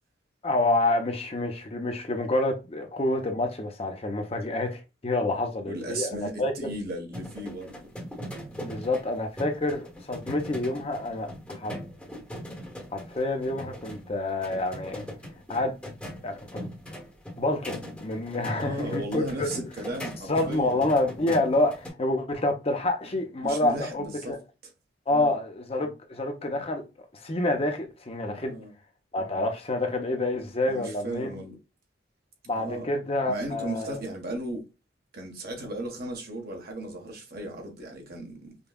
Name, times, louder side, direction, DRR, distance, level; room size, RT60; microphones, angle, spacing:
voice 1, 0.4-6.7 8.5-11.8 12.9-15.0 15.5-15.7 16.2-16.7 17.4-19.6 20.3-24.4 25.1-26.8 27.1-28.6 29.1-31.4 32.5-34.0, left 2 dB, 30° left, 0.7 m, -28 dB
voice 2, 5.6-7.8 18.5-20.8 23.4-24.4 25.1-25.4 28.3-28.7 30.7-31.6 32.6-32.9 33.3-34.7 35.1-38.5, right 1 dB, 55° right, 1.2 m, -36 dB
sound 1, 7.1-21.9, equal, 5° left, 1.2 m, -40 dB
5.2 x 2.3 x 2.3 m
head